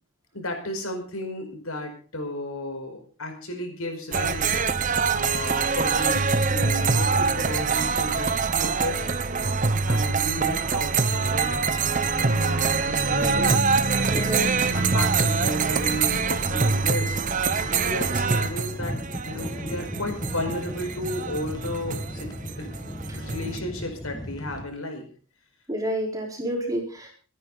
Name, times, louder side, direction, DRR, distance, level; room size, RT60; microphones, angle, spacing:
voice 1, 0.3-4.6 5.1-8.3 8.6-9.1 9.9-17.1 17.6-22.3 22.6-22.7 23.2-25.1, left 1 dB, 80° left, 4 dB, 5.1 m, -34 dB
sound 1, 4.1-23.6, right 4 dB, 35° right, 0.9 m, -24 dB
sound 2, 11.3-24.6, equal, 20° left, 1.7 m, -38 dB
voice 2, 14.1-14.5 25.7-27.1, right 1 dB, 15° right, 0 dB, 4.3 m, -28 dB
26.0 x 10.5 x 4.0 m, 0.41 s
head